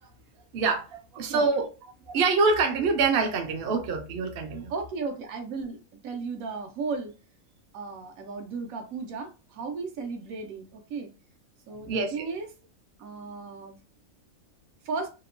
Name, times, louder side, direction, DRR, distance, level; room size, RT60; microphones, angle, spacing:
voice 1, 0.5-1.7 2.1-4.7 11.9-12.3, right 4 dB, 60° right, 0.7 m, -25 dB
voice 2, 4.7-5.8 6.0-7.1 7.7-11.1 11.7-12.5 13.0-13.8 14.8-15.1, right 4 dB, 80° right, 1.0 m, -35 dB
2.8 x 2.1 x 2.4 m
omnidirectional pair, 1.5 m